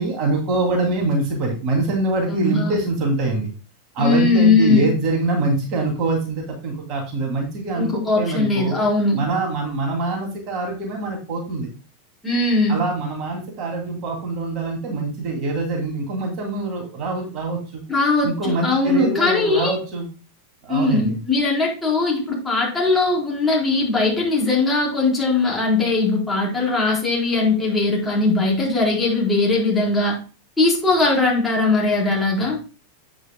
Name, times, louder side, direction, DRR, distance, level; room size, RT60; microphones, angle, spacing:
voice 1, 0.0-3.5 3.9-8.8 9.1-11.7 12.7-17.8 18.2-20.1 20.6-21.2, right 2 dB, 35° right, 1 dB, 2.7 m, -24 dB
voice 2, 2.3-2.8 4.0-5.0 7.8-9.2 12.2-12.8 17.9-19.8 20.7-30.2 30.6-32.6, left 3 dB, 10° left, -4 dB, 4.2 m, -20 dB
9.2 x 8.8 x 2.3 m, 0.34 s
figure-of-eight pair, 90°, 0 cm